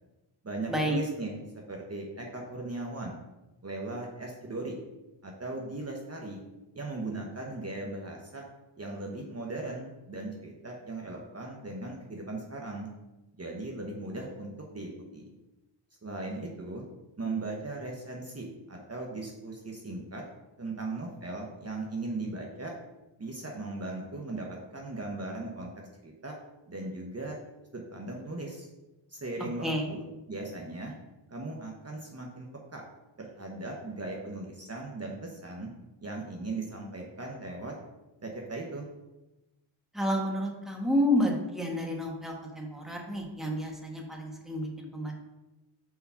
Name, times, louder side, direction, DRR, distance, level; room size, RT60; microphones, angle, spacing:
voice 1, 0.4-3.2 3.6-4.8 5.2-6.4 6.7-8.4 8.8-12.9 13.3-15.3 16.0-16.8 17.2-20.2 20.6-22.7 23.2-24.5 24.7-25.7 26.0-26.3 26.7-27.4 27.7-28.7 29.1-30.0 30.3-30.9 31.3-32.8 33.2-35.7 36.0-37.7 38.2-38.9, right 2 dB, 30° right, -1 dB, 1.1 m, -38 dB
voice 2, 39.9-45.1, left 1 dB, ahead, 0 dB, 1.4 m, -30 dB
5.0 x 4.8 x 5.7 m, 1.0 s
cardioid pair, 90°, 47 cm